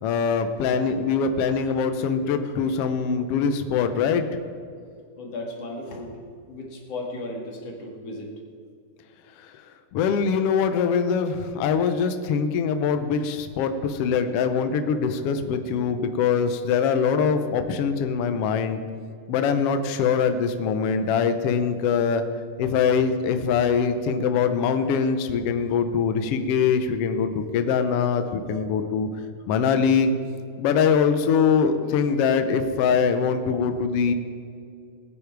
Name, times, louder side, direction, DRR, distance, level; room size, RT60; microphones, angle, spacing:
voice 1, 0.0-4.3 9.9-18.8 19.3-22.2 22.6-29.1 29.5-30.1 30.6-34.1, left 6 dB, 85° left, 8 dB, 1.3 m, -23 dB
voice 2, 5.2-6.2 6.5-8.3, left 2 dB, 50° left, -1 dB, 3.1 m, -35 dB
20.5 x 9.5 x 4.7 m, 2.3 s
omnidirectional pair, 3.8 m